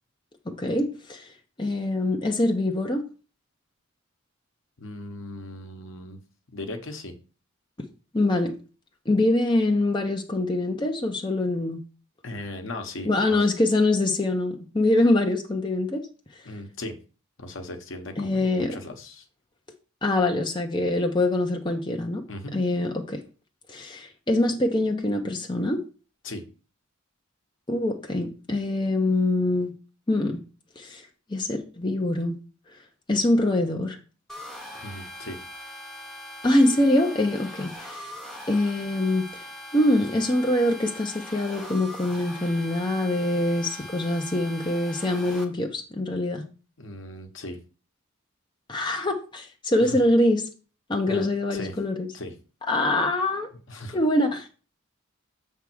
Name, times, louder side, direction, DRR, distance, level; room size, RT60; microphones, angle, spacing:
voice 1, 0.5-1.3 1.6-3.0 8.1-8.5 9.1-11.8 13.1-16.0 18.2-18.8 20.0-22.2 22.5-23.2 23.7-25.8 27.7-29.7 30.1-30.4 30.8-31.0 31.3-32.4 33.1-34.0 36.4-38.1 38.5-39.4 39.7-46.4 48.7-50.4 50.9-52.1 52.7-53.5 53.9-54.5, left 1 dB, 20° left, 0.7 m, -24 dB
voice 2, 4.8-6.2 6.5-7.1 12.2-13.4 16.4-17.0 17.4-19.2 22.3-22.6 26.2-26.5 34.7-35.4 43.7-43.9 46.8-47.6 49.8-50.0 51.0-51.7 52.1-52.3 53.7-54.0, left 1 dB, 65° left, 1.1 m, -37 dB
sound 1, 34.3-45.4, left 1 dB, ahead, 0.9 m, -41 dB
7.2 x 3.5 x 6.1 m
head